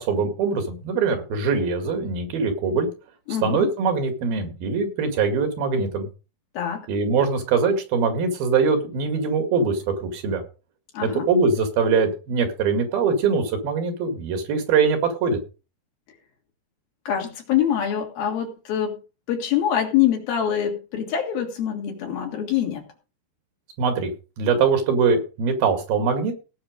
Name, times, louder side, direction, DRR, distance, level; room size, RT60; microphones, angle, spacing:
voice 1, 0.0-2.9 3.4-6.1 6.9-10.4 11.0-15.4 23.8-24.1 24.4-26.3, right 5 dB, 80° right, 7 dB, 4.0 m, -22 dB
voice 2, 3.3-3.7 6.6-6.9 10.9-11.3 17.1-19.0 19.3-22.8, left 9 dB, 80° left, 2 dB, 4.4 m, -24 dB
17.5 x 6.1 x 5.1 m, 0.33 s
omnidirectional pair, 4.2 m